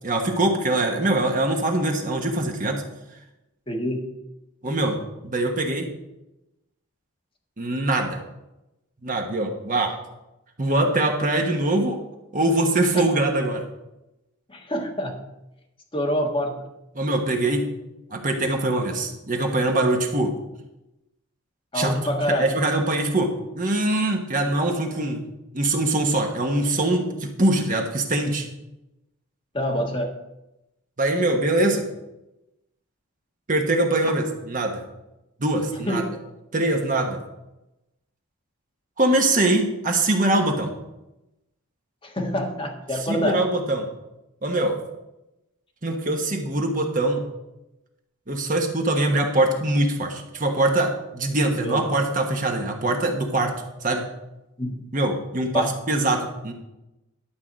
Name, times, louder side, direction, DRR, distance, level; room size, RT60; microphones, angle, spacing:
voice 1, 0.0-2.8 4.6-5.9 7.6-8.2 9.0-10.0 10.6-12.0 12.3-13.7 16.9-17.7 18.1-20.3 21.7-21.9 22.3-25.2 25.5-28.4 31.0-31.8 33.5-34.8 35.4-36.0 36.5-37.2 39.0-40.7 42.9-43.9 44.4-44.8 45.8-47.2 48.3-53.5 53.8-54.0 54.9-56.5, right 2 dB, 35° right, 2 dB, 1.2 m, -23 dB
voice 2, 3.7-4.1 12.9-13.0 14.5-15.2 15.9-16.6 21.7-22.4 29.5-30.1 35.9-36.0 42.0-43.4 51.5-51.8 54.6-54.7 55.5-55.6, equal, 25° left, 0 dB, 1.5 m, -26 dB
11.5 x 4.8 x 7.4 m, 0.94 s
head